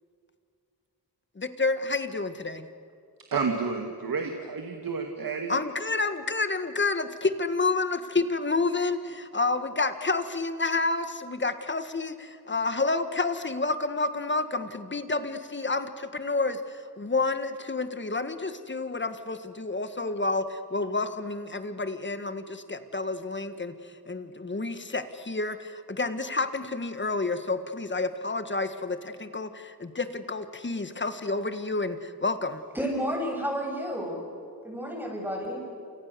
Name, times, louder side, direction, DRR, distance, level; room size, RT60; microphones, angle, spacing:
voice 1, 1.4-2.7 5.5-23.8 24.1-32.6, left 3 dB, 30° left, 10 dB, 1.7 m, -29 dB
voice 2, 3.3-5.5, right 5 dB, 70° right, 3 dB, 2.3 m, -30 dB
voice 3, 32.7-34.2 34.6-35.6, equal, 5° right, -1 dB, 8.0 m, -31 dB
29.0 x 28.5 x 7.0 m, 2.4 s
wide cardioid pair, 95°, 36 cm